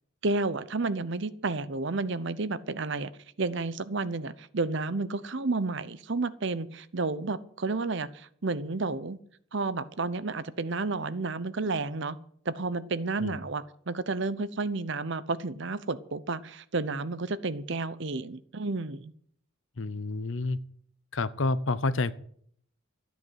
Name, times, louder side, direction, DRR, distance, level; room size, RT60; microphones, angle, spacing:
voice 1, 0.2-3.1 3.4-9.2 9.5-12.2 12.5-19.1, right 3 dB, 60° right, 16 dB, 0.8 m, -31 dB
voice 2, 19.8-20.6 21.1-22.1, left 3 dB, 65° left, 16 dB, 0.8 m, -29 dB
13.5 x 9.4 x 8.0 m, 0.62 s
head